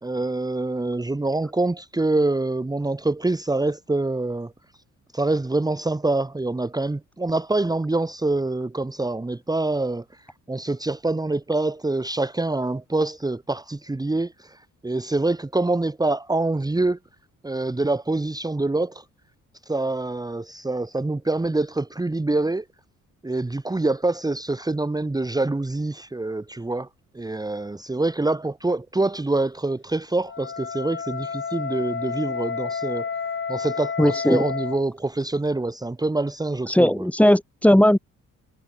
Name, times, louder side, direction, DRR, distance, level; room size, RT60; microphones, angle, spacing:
voice 1, 0.0-4.5 5.1-17.0 17.4-19.0 19.6-22.6 23.2-26.9 27.1-33.1 33.5-37.1, right 2 dB, 15° right, 1.7 m, -25 dB
Wind instrument woodwind instrument, 30.2-34.8, left 6 dB, 40° left, 4.0 m, -30 dB
voice 2, 34.0-34.4 36.7-38.0, left 1 dB, 5° left, 2.3 m, -17 dB
cardioid pair, 90°, 30 cm